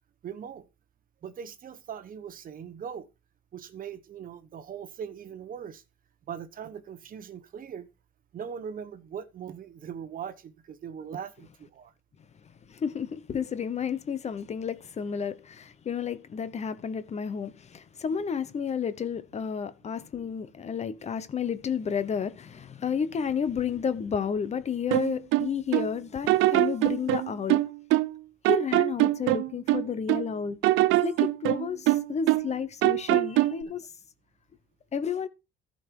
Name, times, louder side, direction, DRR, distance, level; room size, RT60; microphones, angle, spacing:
voice 1, 0.2-0.7 1.2-3.1 3.5-5.8 6.3-7.9 8.3-11.9, right 8 dB, 45° right, 1.1 m, -40 dB
voice 2, 12.4-27.6 28.5-30.6 30.9-33.9 34.9-35.3, left 7 dB, 35° left, 0.9 m, -31 dB
sound 1, 24.9-25.9 26.3-28.2 28.4-30.3 30.6-32.5 32.8-33.6, right 17 dB, 75° right, 0.6 m, -23 dB
14.0 x 5.4 x 4.7 m
cardioid pair, 135°, 21 cm